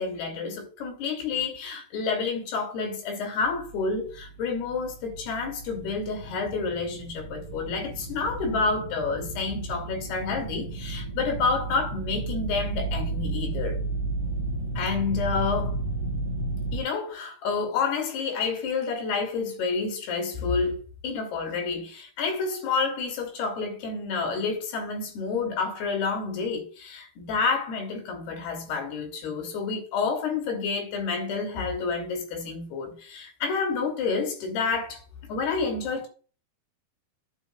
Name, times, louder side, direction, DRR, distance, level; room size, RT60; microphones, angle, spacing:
voice 1, 0.0-13.8 14.8-15.8 16.7-36.1, left 4 dB, 80° left, 4.2 m, -29 dB
sound 1, 3.4-16.8, right 2 dB, 35° right, 2.9 m, -33 dB
10.5 x 7.2 x 2.3 m
omnidirectional pair, 4.6 m